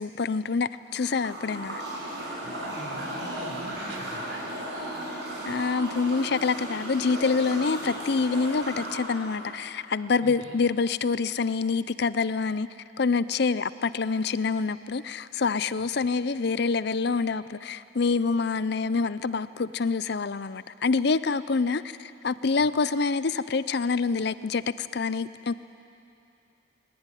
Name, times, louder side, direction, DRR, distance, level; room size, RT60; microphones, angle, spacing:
voice 1, 0.0-1.8 5.5-12.7 13.0-25.6, left 4 dB, 55° left, 15 dB, 0.5 m, -26 dB
sound 1, 0.9-9.6, right 1 dB, 60° right, 6.4 m, -36 dB
voice 2, 2.4-4.4 10.2-10.6 22.6-22.7, equal, 80° right, 1 dB, 3.8 m, -42 dB
20.5 x 18.5 x 10.0 m, 2.7 s
head